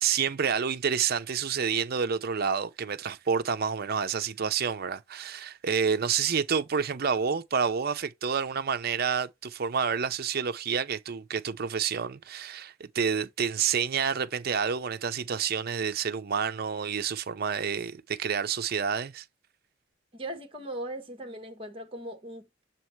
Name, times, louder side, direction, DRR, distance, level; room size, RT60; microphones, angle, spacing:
voice 1, 0.0-19.2, right 6 dB, 50° right, 0.5 m, -29 dB
voice 2, 20.1-22.6, right 1 dB, 30° right, 1.3 m, -39 dB
7.1 x 2.9 x 4.5 m
head